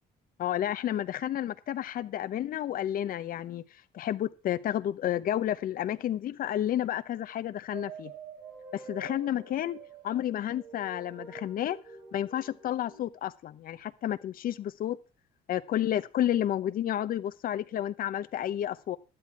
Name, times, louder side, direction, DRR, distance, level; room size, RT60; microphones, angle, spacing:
voice 1, 0.4-3.6 3.9-8.1 8.7-9.8 10.0-11.8 12.1-15.0 15.5-19.0, left 11 dB, 60° left, 0.8 m, -31 dB
sound 1, 7.7-13.0, right 5 dB, 90° right, 4.5 m, -47 dB
12.5 x 11.0 x 4.7 m
cardioid pair, 110°, 17 cm